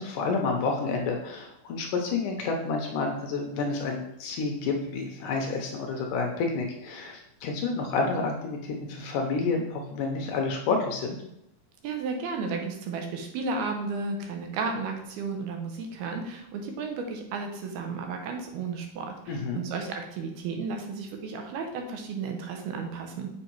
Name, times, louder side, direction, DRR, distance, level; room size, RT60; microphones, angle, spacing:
voice 1, 0.0-11.2 19.3-19.6, left 4 dB, 70° left, 2 dB, 2.2 m, -29 dB
voice 2, 11.8-23.3, right 4 dB, 90° right, 3 dB, 3.0 m, -33 dB
7.1 x 5.0 x 4.6 m, 0.80 s
omnidirectional pair, 4.3 m